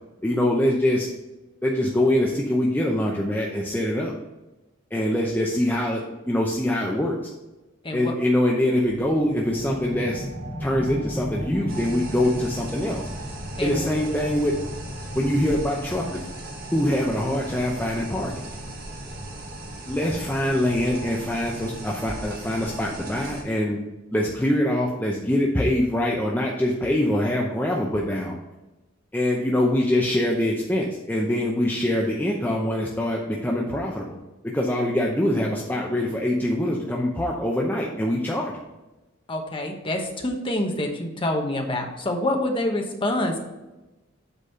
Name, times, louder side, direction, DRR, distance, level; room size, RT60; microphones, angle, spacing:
voice 1, 0.2-1.1 1.6-4.1 4.9-7.2 7.9-10.2 10.6-13.1 13.6-14.5 15.2-16.3 16.7-18.5 19.9-23.8 24.1-28.4 29.1-34.2 34.5-38.6, left 1 dB, 10° left, -2 dB, 0.7 m, -24 dB
sound 1, 8.8-19.9, equal, 90° right, 1.9 m, -37 dB
sound 2, 11.7-23.4, right 1 dB, 45° right, 1.5 m, -37 dB
voice 2, 13.6-13.9 39.3-43.4, left 1 dB, 25° left, 3 dB, 1.0 m, -26 dB
8.1 x 4.2 x 5.6 m, 1.1 s
head